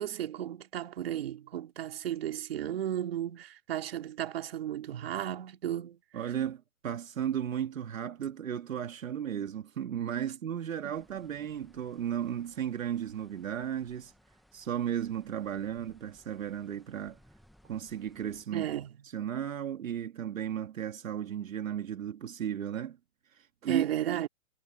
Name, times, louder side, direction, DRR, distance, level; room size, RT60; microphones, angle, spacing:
voice 1, 0.0-6.0 10.8-10.9 18.5-19.0 23.7-24.3, right 11 dB, 40° right, 2.3 m, -34 dB
voice 2, 6.1-14.1 14.5-17.2 17.6-18.7 19.1-23.0 23.3-23.9, right 9 dB, 60° right, 1.9 m, -35 dB
sound 1, 10.9-18.4, equal, ahead, 0.6 m, -62 dB
hypercardioid pair, 170°, 45 cm